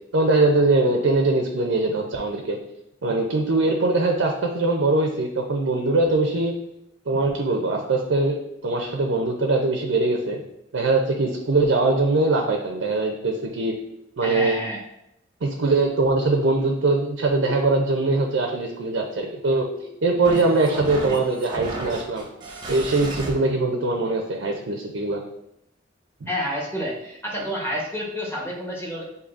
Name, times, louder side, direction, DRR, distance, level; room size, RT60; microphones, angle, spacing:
voice 1, 0.1-2.6 3.0-6.5 7.1-8.4 8.6-10.4 10.7-13.7 14.2-14.6 15.4-19.7 20.0-22.3 22.7-25.2, right 2 dB, 80° right, 2 dB, 0.5 m, -22 dB
voice 2, 14.2-14.8 26.3-29.0, equal, 15° left, -3 dB, 1.0 m, -29 dB
sound 1, 18.4-23.3, right 1 dB, 25° right, 0.7 m, -36 dB
6.6 x 2.7 x 2.5 m, 0.81 s
head